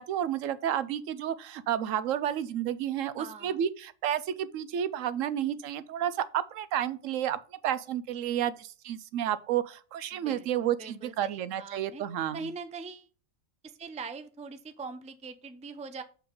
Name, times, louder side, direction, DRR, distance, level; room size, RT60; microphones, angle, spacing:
voice 1, 0.0-12.5, right 10 dB, 85° right, 1.0 m, -31 dB
voice 2, 3.2-3.6 10.1-10.5 10.8-12.0 12.3-13.1 13.6-16.0, right 4 dB, 10° right, 0.3 m, -42 dB
6.8 x 4.7 x 5.2 m
omnidirectional pair, 1.3 m